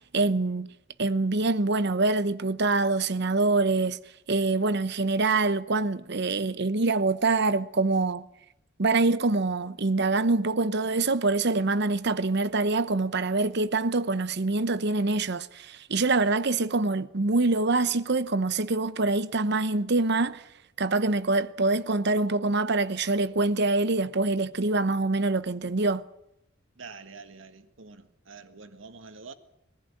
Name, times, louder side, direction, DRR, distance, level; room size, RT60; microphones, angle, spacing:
voice 1, 0.1-0.7 1.0-4.0 4.3-8.3 8.8-20.4 20.8-26.0, right 3 dB, 60° right, 0.9 m, -25 dB
voice 2, 26.8-29.3, right 4 dB, 75° right, 1.8 m, -46 dB
22.5 x 15.5 x 9.9 m
head